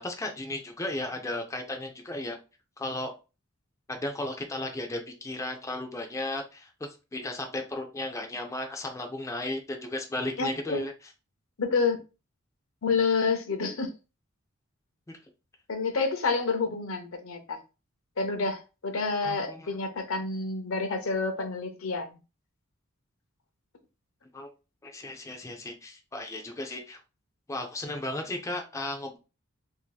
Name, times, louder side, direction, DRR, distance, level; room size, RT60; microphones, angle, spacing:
voice 1, 0.0-2.4 2.8-3.1 3.9-6.7 7.1-10.9 15.1-15.2 19.2-19.7 24.3-24.5 24.8-27.0 27.5-29.2, left 1 dB, 15° left, 3 dB, 0.4 m, -35 dB
voice 2, 10.4-10.8 11.6-12.0 12.8-13.9 15.7-17.6 18.2-22.2, left 4 dB, 70° left, 7 dB, 0.7 m, -28 dB
2.7 x 2.6 x 3.8 m, 0.30 s
head